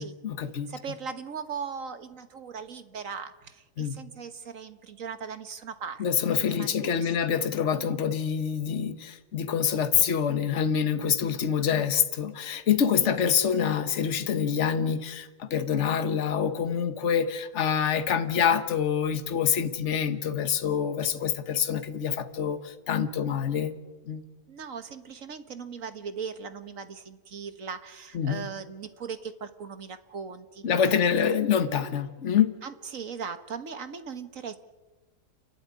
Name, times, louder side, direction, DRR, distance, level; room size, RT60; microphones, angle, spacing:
voice 1, 0.0-0.7 3.8-4.0 6.0-23.7 24.0-24.2 28.1-28.5 30.6-32.6, left 8 dB, 50° left, 10 dB, 1.5 m, -26 dB
voice 2, 0.7-6.0 6.3-7.3 13.0-13.1 24.5-30.6 31.2-31.3 32.6-34.6, right 6 dB, 55° right, 10 dB, 1.6 m, -39 dB
29.5 x 12.0 x 9.7 m, 1.2 s
omnidirectional pair, 1.7 m